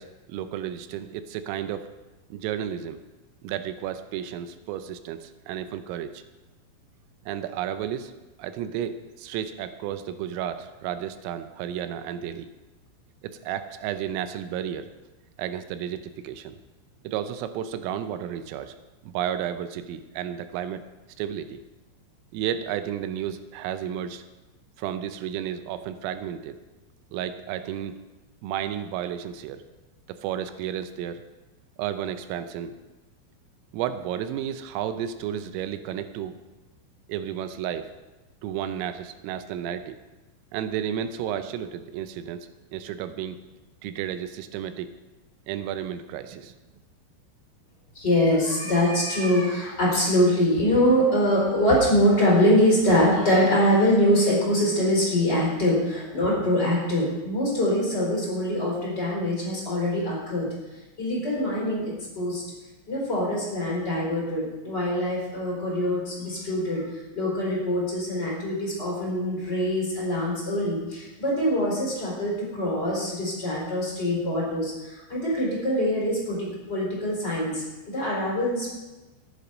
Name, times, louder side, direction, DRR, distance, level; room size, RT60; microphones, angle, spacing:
voice 1, 0.0-1.9 2.3-3.0 3.4-6.2 7.3-8.1 8.4-12.5 13.2-14.9 15.4-16.6 17.0-18.7 19.0-20.8 21.2-21.6 22.3-24.2 24.8-26.6 27.1-28.0 28.4-29.6 30.1-31.2 31.8-32.7 33.7-36.3 37.1-37.9 38.4-40.0 40.5-43.4 43.8-44.9 45.5-46.5, right 10 dB, 85° right, 10 dB, 3.4 m, -32 dB
voice 2, 47.9-60.5 61.0-62.4 62.9-66.8 67.1-76.4 76.7-77.6 77.9-78.7, equal, 20° left, -5 dB, 4.2 m, -23 dB
14.5 x 10.0 x 5.2 m, 1.1 s
omnidirectional pair, 5.8 m